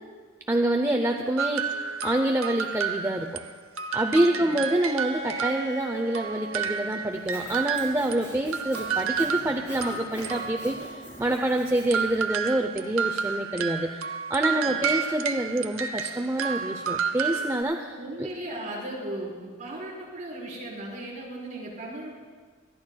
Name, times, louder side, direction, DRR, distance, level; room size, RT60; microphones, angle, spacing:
voice 1, 0.5-3.4 3.9-18.3, right 1 dB, 15° right, 3 dB, 0.5 m, -27 dB
sound 1, 1.4-3.5 3.8-8.2 8.5-10.9 11.9-17.6, right 6 dB, 75° right, 0.6 m, -31 dB
voice 2, 4.2-4.6 14.5-14.8 17.9-22.1, right 1 dB, 35° right, -6 dB, 3.9 m, -37 dB
Bowed string instrument, 4.6-8.3, right 3 dB, 55° left, 3.6 m, -40 dB
Sawing, 7.1-12.2, equal, 15° left, 4.6 m, -44 dB
25.5 x 11.5 x 2.2 m, 1.5 s
head